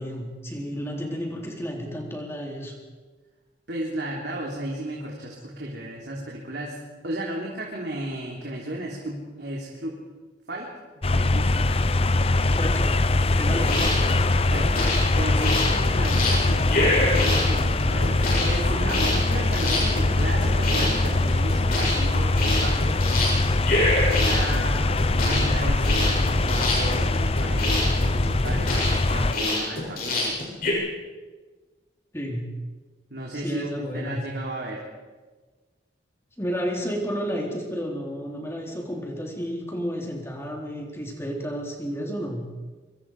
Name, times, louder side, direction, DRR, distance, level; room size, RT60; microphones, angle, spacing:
voice 1, 0.0-2.7 12.6-12.9 13.4-13.9 32.1-32.5 33.3-34.2 36.4-42.5, equal, 15° left, 0 dB, 3.8 m, -31 dB
voice 2, 3.7-6.8 7.0-10.0 10.5-11.7 13.5-13.8 14.4-14.9 15.2-23.1 24.2-30.4 33.1-34.9, right 1 dB, 65° right, -3 dB, 3.7 m, -34 dB
sound 1, 11.0-29.3, left 2 dB, 30° left, 0.7 m, -22 dB
sound 2, 13.7-30.7, left 2 dB, 50° left, 7.5 m, -26 dB
25.0 x 25.0 x 5.0 m, 1.3 s
head